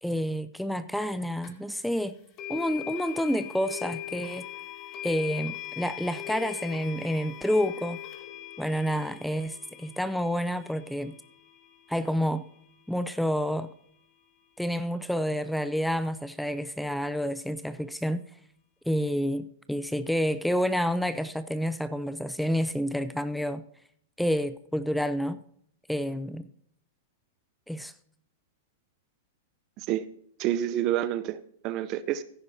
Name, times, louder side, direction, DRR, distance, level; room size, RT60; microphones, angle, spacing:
voice 1, 0.0-2.2 2.5-4.5 5.0-8.0 8.6-11.1 11.9-12.4 12.9-13.7 14.6-18.2 18.9-23.6 24.2-25.4 25.9-26.5 27.7-27.9, equal, ahead, 13 dB, 0.5 m, -29 dB
sound 1, 1.4-1.5 2.4-13.4, left 14 dB, 40° left, 2.4 m, -41 dB
voice 2, 30.4-32.2, right 12 dB, 45° right, 15 dB, 0.6 m, -28 dB
16.0 x 9.6 x 2.8 m, 0.67 s
hypercardioid pair, 120°, 0 cm